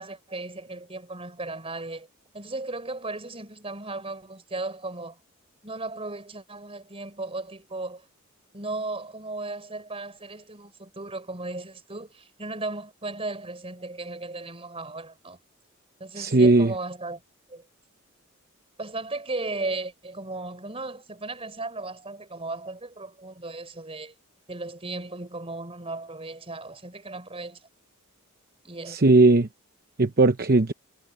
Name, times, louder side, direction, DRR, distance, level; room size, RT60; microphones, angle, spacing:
voice 1, 0.0-2.1 2.3-5.2 5.6-8.0 8.5-15.4 16.0-17.2 17.5-17.6 18.8-24.1 24.5-27.6 28.6-29.1, right 2 dB, 25° right, 5.1 m, -36 dB
voice 2, 16.2-16.7 28.9-29.5 30.0-30.7, right 2 dB, 45° right, 0.9 m, -18 dB
head